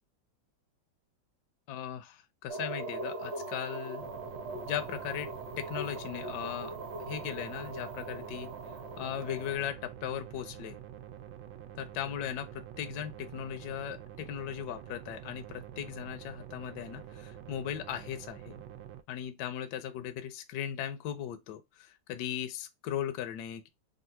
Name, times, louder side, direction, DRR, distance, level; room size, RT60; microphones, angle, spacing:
voice 1, 1.7-4.1 4.7-5.3 5.6-6.7 7.0-8.5 9.0-10.8 11.8-18.6 19.1-23.7, left 10 dB, 70° left, 1.1 m, -38 dB
sound 1, 2.5-9.5, right 2 dB, 40° right, 1.0 m, -41 dB
sound 2, 4.0-19.0, right 10 dB, 80° right, 1.3 m, -47 dB
3.7 x 2.4 x 4.3 m
omnidirectional pair, 2.1 m